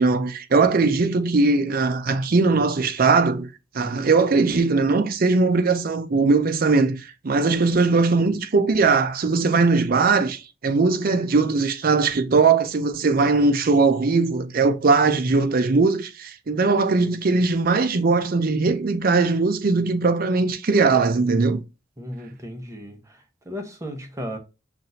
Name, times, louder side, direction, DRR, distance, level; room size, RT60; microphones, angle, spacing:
voice 1, 0.0-3.5 3.7-21.6, right 4 dB, 50° right, 0.5 m, -20 dB
voice 2, 22.0-24.4, equal, 15° right, 0.8 m, -35 dB
5.9 x 2.5 x 2.6 m
head